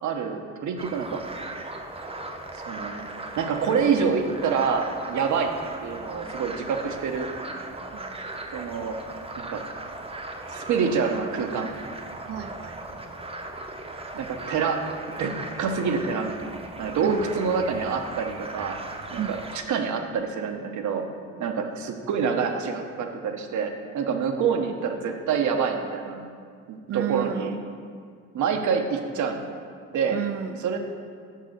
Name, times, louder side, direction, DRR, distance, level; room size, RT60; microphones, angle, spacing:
voice 1, 0.0-1.2 2.7-3.1 3.4-5.5 5.8-7.3 8.5-9.0 9.4-9.6 10.5-11.8 14.1-14.8 15.2-15.3 15.6-18.8 19.1-19.4 19.7-21.0 21.4-26.3 26.7-27.6 28.3-29.4 29.9-30.2 30.6-30.8, right 6 dB, 70° right, 4 dB, 1.0 m, -26 dB
sound 1, 0.8-19.6, right 2 dB, 20° right, 0.8 m, -38 dB
voice 2, 12.3-13.0 17.0-17.2 19.2-19.4 21.3-21.5 26.9-27.5 30.1-30.6, right 10 dB, 50° right, 9 dB, 0.5 m, -32 dB
6.6 x 5.0 x 6.5 m, 2.1 s
cardioid pair, 90°, 30 cm